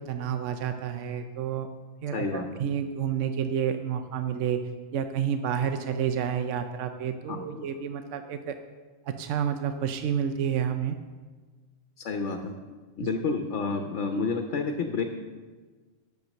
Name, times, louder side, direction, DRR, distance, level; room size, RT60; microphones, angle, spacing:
voice 1, 0.0-1.7 2.0-4.6 4.9-8.6 9.1-11.0, right 8 dB, 75° right, 8 dB, 1.0 m, -29 dB
voice 2, 2.1-2.5 7.3-7.6 12.0-12.5 13.0-15.0, left 4 dB, 70° left, 5 dB, 1.1 m, -30 dB
10.5 x 7.3 x 6.3 m, 1.4 s
omnidirectional pair, 1.3 m